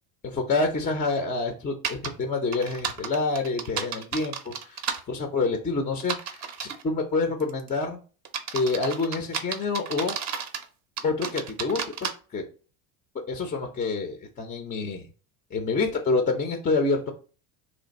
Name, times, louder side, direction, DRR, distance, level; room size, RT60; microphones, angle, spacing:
voice 1, 0.2-4.8 5.1-8.0 8.5-10.2 11.0-12.4 13.3-15.1 15.5-17.1, left 3 dB, 20° left, 4 dB, 0.3 m, -27 dB
sound 1, 1.8-2.1 2.5-5.0 6.0-6.8 7.4-7.7 8.2-10.7 11.0-12.1, right 7 dB, 35° right, 0.5 m, -32 dB
3.1 x 2.5 x 3.9 m, 0.37 s
supercardioid pair, 115°, 48 cm